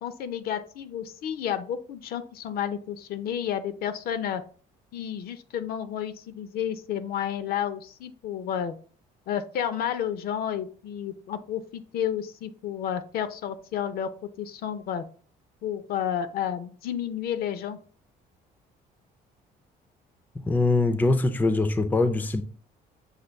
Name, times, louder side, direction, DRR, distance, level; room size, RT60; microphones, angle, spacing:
voice 1, 0.0-4.4 4.9-8.7 9.3-14.1 14.4-15.0 15.6-17.8, left 9 dB, 65° left, 0.5 m, -31 dB
voice 2, 20.4-22.4, left 3 dB, 10° left, 0.4 m, -23 dB
6.5 x 2.2 x 3.3 m
cardioid pair, 110°, 17 cm